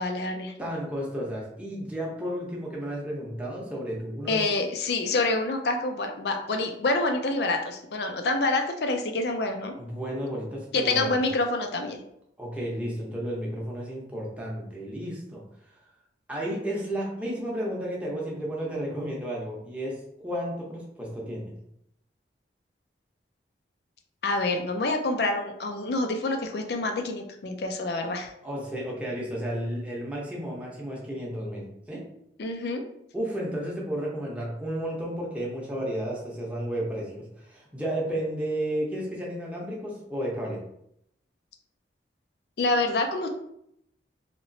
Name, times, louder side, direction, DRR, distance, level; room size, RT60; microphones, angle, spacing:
voice 1, 0.0-0.5 4.3-9.7 10.7-12.0 24.2-28.3 32.4-32.8 42.6-43.3, left 2 dB, 65° left, 5 dB, 0.5 m, -27 dB
voice 2, 0.6-4.4 9.8-11.1 12.4-15.4 16.3-21.5 28.4-32.0 33.1-40.6, equal, 10° right, -4 dB, 0.7 m, -32 dB
2.9 x 2.9 x 2.6 m, 0.75 s
head